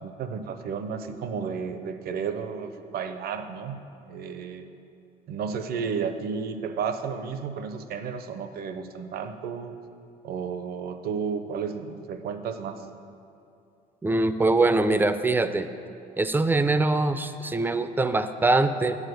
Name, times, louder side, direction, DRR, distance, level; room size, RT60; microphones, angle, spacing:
voice 1, 0.0-3.8 4.1-4.7 5.3-9.7 10.2-12.8, right 6 dB, 65° right, 9 dB, 0.7 m, -32 dB
voice 2, 14.0-15.7 16.2-19.0, right 2 dB, 10° right, 11 dB, 0.4 m, -23 dB
9.3 x 4.9 x 7.9 m, 2.6 s
cardioid pair, 110°, 17 cm